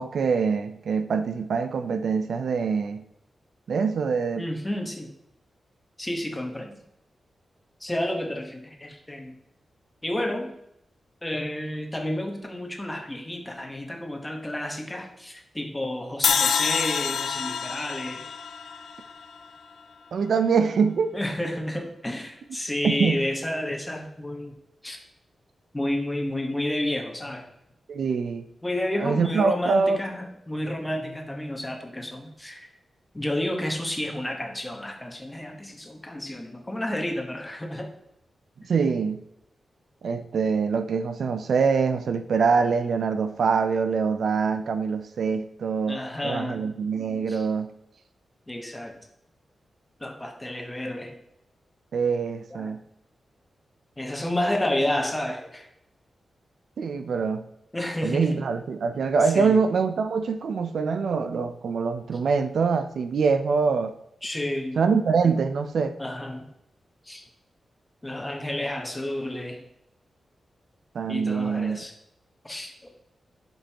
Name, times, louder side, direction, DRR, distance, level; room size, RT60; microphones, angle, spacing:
voice 1, 0.0-3.0 3.7-4.5 20.1-21.2 22.8-23.2 27.9-28.5 29.0-30.0 38.7-39.2 40.0-47.7 51.9-52.8 56.8-57.5 58.0-63.9 64.8-65.9 70.9-71.8, right 5 dB, 70° right, 9 dB, 0.5 m, -24 dB
voice 2, 4.4-5.1 6.0-6.7 7.8-9.3 10.0-10.5 11.2-18.2 21.1-24.5 24.8-25.0 25.7-27.5 28.6-32.7 33.1-37.9 45.9-46.6 47.3-47.5 48.5-49.0 50.0-51.1 52.5-52.7 54.0-55.7 57.7-58.4 59.3-59.6 64.2-64.8 66.0-66.4 67.1-67.2 68.0-69.6 71.1-71.9 72.4-72.7, left 1 dB, 10° left, 3 dB, 1.2 m, -30 dB
sound 1, 16.2-19.5, left 6 dB, 70° left, 0.5 m, -26 dB
11.5 x 5.3 x 2.9 m, 0.81 s
wide cardioid pair, 160°, 0 cm